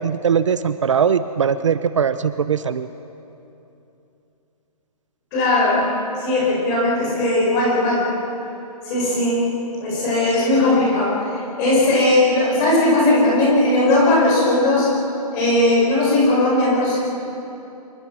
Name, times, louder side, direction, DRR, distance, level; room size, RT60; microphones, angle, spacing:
voice 1, 0.0-2.9, right 7 dB, 50° right, 12 dB, 0.6 m, -20 dB
voice 2, 5.3-5.9 6.2-8.1 8.8-9.5 9.8-14.9 15.3-17.0, left 2 dB, 15° left, -4 dB, 5.4 m, -18 dB
26.5 x 23.5 x 6.2 m, 2.9 s
hypercardioid pair, 175°, 20 cm